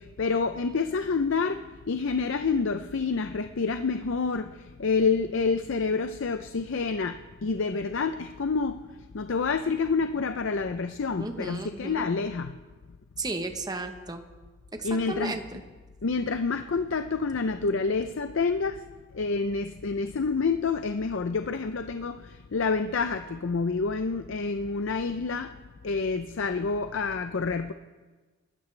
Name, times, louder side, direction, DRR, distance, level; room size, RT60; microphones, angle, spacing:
voice 1, 0.0-8.8 9.1-12.5 14.8-15.4 16.0-18.8 19.1-25.5 25.8-27.7, left 4 dB, 60° left, 8 dB, 0.5 m, -28 dB
voice 2, 11.2-12.1 13.2-14.2 14.8-15.6, right 2 dB, 20° right, 6 dB, 0.9 m, -34 dB
27.0 x 13.0 x 3.3 m, 1.3 s
head